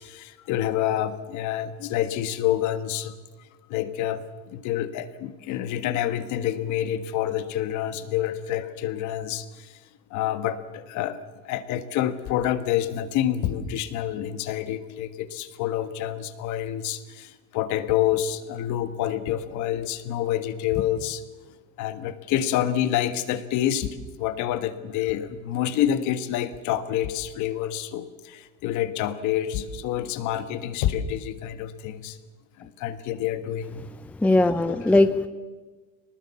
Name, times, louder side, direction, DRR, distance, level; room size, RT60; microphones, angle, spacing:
voice 1, 0.0-3.1 3.7-4.2 4.5-9.8 10.1-21.2 21.8-32.2 32.6-33.8 34.7-34.9, left 11 dB, 50° left, 11 dB, 1.6 m, -28 dB
voice 2, 34.2-35.3, left 2 dB, 5° left, 11 dB, 0.6 m, -19 dB
23.0 x 19.5 x 7.2 m, 1.3 s
supercardioid pair, 130°, 36 cm